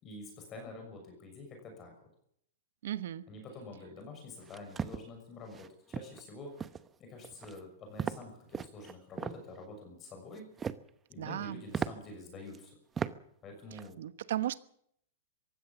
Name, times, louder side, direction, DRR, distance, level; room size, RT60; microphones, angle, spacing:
voice 1, 0.0-2.1 3.3-6.6 7.0-10.5 11.1-12.8 13.4-14.0, left 2 dB, 25° left, 6.4 m, -47 dB
voice 2, 2.8-3.2 11.2-11.6 14.0-14.6, right 12 dB, 75° right, 1.2 m, -35 dB
sound 1, 4.4-5.0 5.5-5.7 5.9-6.2 6.6-6.9 7.2-7.6 8.0-8.2 8.5-9.4 10.3-10.9 11.3-11.4 11.7-11.9 12.5-12.6 13.0-13.1 13.5-13.9, right 7 dB, 15° right, 0.9 m, -37 dB
22.5 x 16.0 x 7.2 m
hypercardioid pair, 145°, 0 cm